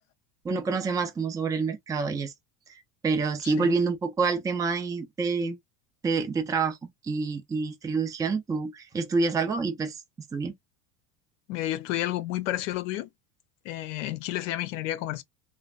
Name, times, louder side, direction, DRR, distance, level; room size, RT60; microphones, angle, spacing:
voice 1, 0.4-2.3 3.0-5.6 6.0-6.8 7.0-10.0 10.3-10.5, right 4 dB, 10° right, 0.4 m, -27 dB
voice 2, 11.5-13.1 13.6-15.2, left 14 dB, 80° left, 0.7 m, -31 dB
3.0 x 2.0 x 2.3 m
supercardioid pair, 125°, 38 cm